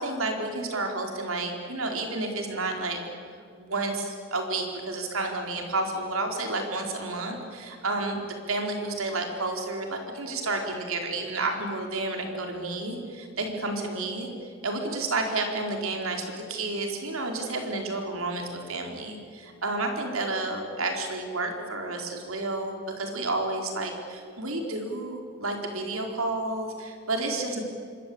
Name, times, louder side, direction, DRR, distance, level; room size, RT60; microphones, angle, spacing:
voice 1, 0.0-3.0 3.6-8.2 8.5-27.6, right 2 dB, 90° right, 3 dB, 4.4 m, -31 dB
27.0 x 23.5 x 8.7 m, 2.3 s
head